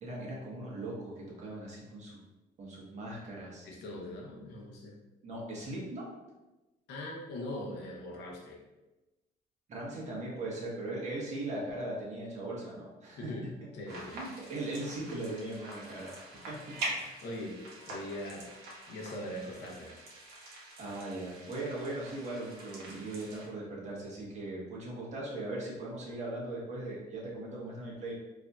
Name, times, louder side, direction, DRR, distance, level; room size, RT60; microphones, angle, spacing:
voice 1, 0.0-2.2 2.6-3.7 5.2-6.1 9.7-13.5 14.1-16.1 16.5-16.7 20.8-28.1, right 2 dB, 45° right, -4 dB, 1.3 m, -39 dB
voice 2, 3.6-4.9 6.9-8.6 13.2-13.5 13.7-14.2 17.0-18.5 18.9-20.0, left 1 dB, 80° left, -1 dB, 1.0 m, -41 dB
sound 1, 13.9-23.5, right 2 dB, 70° right, 1.2 m, -44 dB
4.7 x 2.8 x 2.4 m, 1.1 s
cardioid pair, 110°, 17 cm